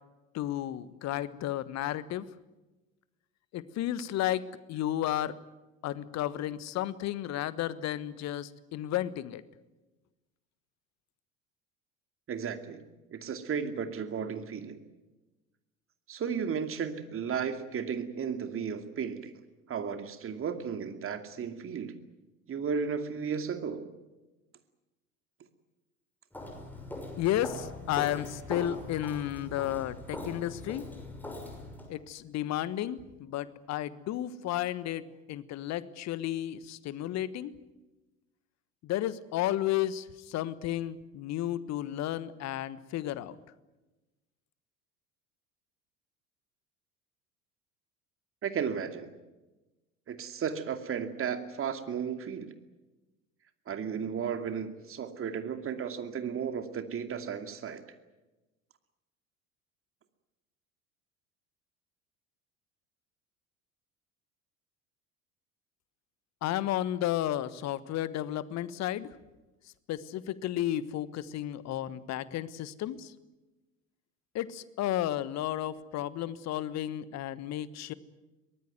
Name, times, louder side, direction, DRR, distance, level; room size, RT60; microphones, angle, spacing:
voice 1, 0.3-2.3 3.5-5.3 5.8-9.4 27.2-30.9 31.9-37.5 38.8-43.4 66.4-69.1 69.9-73.1 74.3-77.9, left 13 dB, 40° left, 16 dB, 1.4 m, -33 dB
voice 2, 12.3-12.8 13.1-14.8 16.1-19.3 19.7-21.9 22.5-23.9 48.4-49.1 50.1-52.5 53.7-57.8, right 7 dB, 30° right, 7 dB, 2.5 m, -34 dB
Walk footsteps, 26.3-31.9, left 2 dB, 5° left, 6.1 m, -41 dB
23.0 x 19.5 x 9.5 m, 1.1 s
figure-of-eight pair, 65°, 40 cm